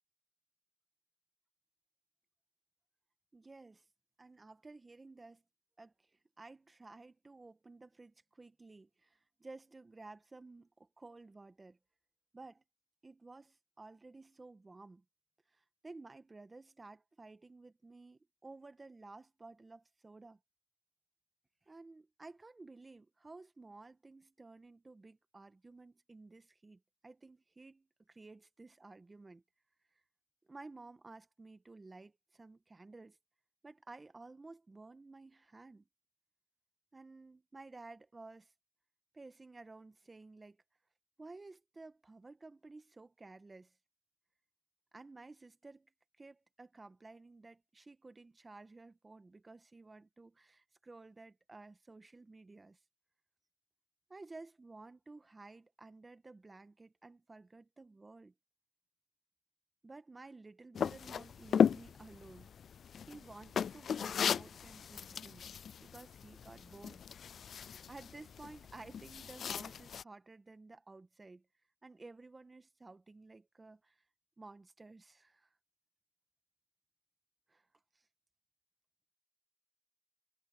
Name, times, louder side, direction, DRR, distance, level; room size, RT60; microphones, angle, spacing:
voice 1, 3.3-3.8 4.2-5.4 5.8-11.8 12.3-12.6 13.0-15.0 15.5-20.4 21.7-29.4 30.5-33.2 33.6-35.9 36.9-38.5 39.1-40.6 41.2-43.7 44.9-45.9 46.2-52.8 54.1-58.3 59.8-62.5 63.1-65.5 65.8-67.0 67.9-71.5 71.8-74.0 74.4-75.6 77.5-77.7 77.9-78.0, right 3 dB, 25° right, 1.5 m, -54 dB
sound 1, 60.7-70.0, left 7 dB, 60° left, 0.3 m, -36 dB
cardioid pair, 70°, 0 cm